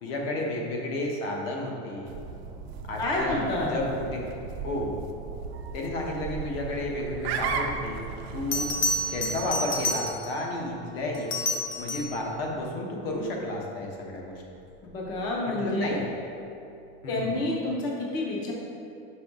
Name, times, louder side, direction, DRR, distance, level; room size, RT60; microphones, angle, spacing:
voice 1, 0.0-2.2 2.9-4.3 4.6-5.0 5.7-8.0 8.3-8.7 9.1-11.3 11.8-14.4 15.5-16.0 17.0-17.4, left 1 dB, 75° left, -1 dB, 1.1 m, -32 dB
sound 1, 2.1-10.1, right 5 dB, 75° right, 0.6 m, -36 dB
voice 2, 3.0-3.8 14.8-16.0 17.1-18.5, left 2 dB, 15° left, -3 dB, 0.3 m, -29 dB
Bell, 8.5-10.5 11.1-12.2 14.9-15.2, left 2 dB, 50° left, 0.7 m, -29 dB
5.6 x 4.9 x 3.6 m, 2.6 s
supercardioid pair, 180°, 30 cm